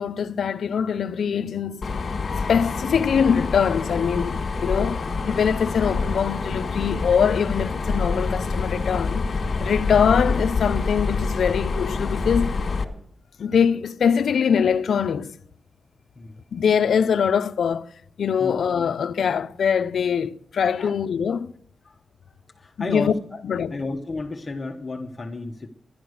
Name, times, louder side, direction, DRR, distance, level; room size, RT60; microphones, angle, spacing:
voice 1, 0.0-1.9 2.5-9.3 9.6-12.6 13.4-15.3 16.5-17.9 18.2-21.5 22.8-23.1 23.4-23.7, left 7 dB, 75° left, 0.5 m, -23 dB
Mechanisms, 1.8-12.8, left 4 dB, 45° left, 1.7 m, -26 dB
voice 2, 22.3-23.4 23.7-25.7, left 3 dB, 25° left, 0.9 m, -32 dB
12.0 x 11.0 x 6.4 m
wide cardioid pair, 140°, 0 cm